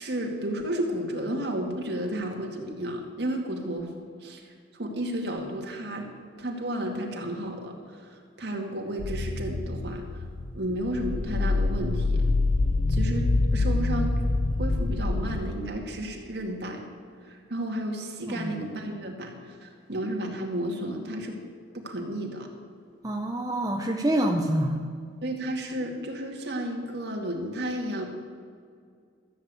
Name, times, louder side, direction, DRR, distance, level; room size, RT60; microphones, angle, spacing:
voice 1, 0.0-3.9 4.2-4.4 4.7-6.1 6.4-10.2 10.5-12.3 12.9-14.2 14.6-16.9 17.2-21.4 21.7-22.5 25.2-28.1, right 1 dB, 60° right, 1 dB, 2.2 m, -32 dB
sound 1, 9.0-15.4, left 2 dB, 85° left, 0.8 m, -26 dB
voice 2, 18.2-18.5 23.0-24.8, right 1 dB, 20° right, 1 dB, 0.7 m, -26 dB
13.5 x 8.0 x 8.2 m, 2.2 s
head